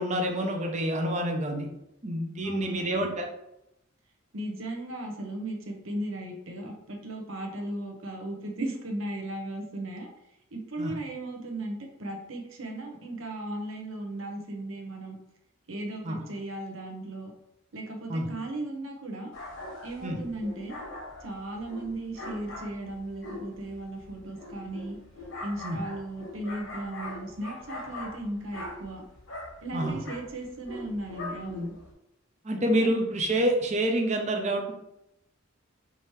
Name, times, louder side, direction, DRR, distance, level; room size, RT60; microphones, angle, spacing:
voice 1, 0.0-1.7 2.0-3.3 10.8-10.9 16.0-16.2 18.1-18.3 20.0-20.2 25.6-25.8 29.7-30.0 32.4-34.7, right 1 dB, 35° right, 2 dB, 0.7 m, -27 dB
voice 2, 2.4-3.1 4.3-10.1 10.5-15.2 15.7-17.3 17.7-19.3 19.8-20.7 21.2-25.0 25.4-29.0 29.6-31.7 32.8-32.9, right 1 dB, 70° right, 1 dB, 0.9 m, -36 dB
sound 1, 19.3-31.9, left 2 dB, 70° left, 1.2 m, -41 dB
5.0 x 2.9 x 3.2 m, 0.85 s
head